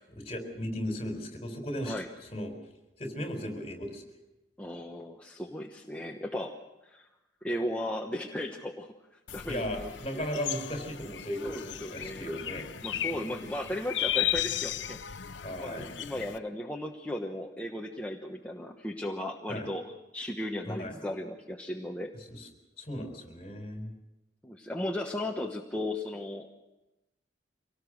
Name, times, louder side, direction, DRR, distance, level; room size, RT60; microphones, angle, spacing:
voice 1, 0.2-2.0 2.3-2.5 3.0-4.0 9.5-13.3 15.4-16.0 19.5-19.7 20.7-21.0 22.3-22.5 22.8-23.9, equal, 35° left, 4 dB, 4.4 m, -36 dB
voice 2, 4.6-6.6 6.8-7.1 7.4-10.3 11.4-12.3 12.8-15.0 15.6-22.1 24.4-26.5, left 1 dB, 5° left, 0 dB, 1.1 m, -36 dB
sound 1, 9.3-16.4, left 11 dB, 85° left, 0.7 m, -35 dB
25.0 x 18.5 x 6.4 m, 0.98 s
head